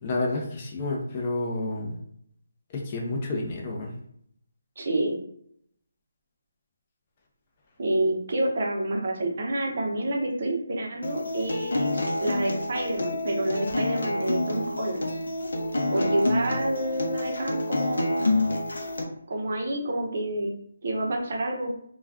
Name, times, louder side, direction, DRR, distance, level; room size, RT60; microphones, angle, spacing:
voice 1, 0.0-1.9 2.7-3.9, left 2 dB, 20° left, -1 dB, 0.5 m, -30 dB
voice 2, 4.8-5.2 7.8-15.1 15.9-18.4 19.3-20.5 20.8-21.7, right 1 dB, 40° right, 0 dB, 0.6 m, -28 dB
Acoustic guitar, 11.0-19.0, left 1 dB, 75° left, 0.6 m, -28 dB
2.4 x 2.2 x 3.4 m, 0.69 s
hypercardioid pair, 175°, 0 cm